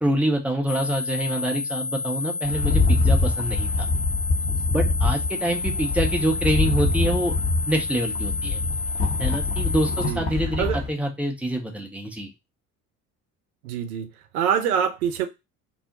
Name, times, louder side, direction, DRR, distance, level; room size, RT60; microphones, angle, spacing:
voice 1, 0.0-3.9 4.7-7.3 7.7-8.6 9.2-12.3, right 1 dB, 5° right, 0.4 m, -26 dB
sound 1, 0.7-10.1, left 4 dB, 55° left, 1.0 m, -30 dB
Rattle, 2.4-10.9, left 3 dB, 30° left, 0.8 m, -24 dB
voice 2, 13.6-14.1 14.3-15.3, right 8 dB, 70° right, 0.5 m, -24 dB
2.5 x 2.0 x 2.8 m
figure-of-eight pair, 55°, 45 cm